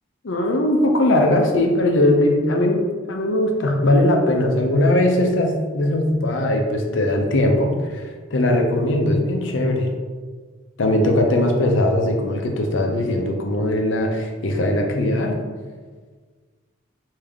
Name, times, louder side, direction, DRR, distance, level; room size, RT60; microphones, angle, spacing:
voice 1, 0.2-8.0 8.3-9.9 10.8-15.4, left 1 dB, 70° left, 2 dB, 0.6 m, -19 dB
3.4 x 2.7 x 3.5 m, 1.5 s
head